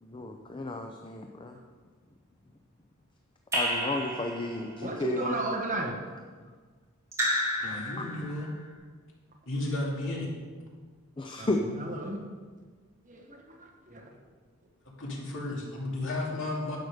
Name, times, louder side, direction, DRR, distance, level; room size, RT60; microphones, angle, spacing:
voice 1, 0.0-1.6 3.5-5.4 11.2-11.6, left 2 dB, 20° left, 3 dB, 0.6 m, -33 dB
Raindrop / Drip, 3.5-4.7 7.1-8.5, equal, 15° right, 2.6 m, -31 dB
voice 2, 4.8-6.0 11.4-12.2 13.0-14.0, right 1 dB, 35° right, 1 dB, 1.4 m, -34 dB
voice 3, 7.6-8.5 9.5-10.3 15.0-16.8, left 2 dB, 60° left, -3 dB, 2.7 m, -33 dB
10.5 x 8.0 x 5.0 m, 1.5 s
head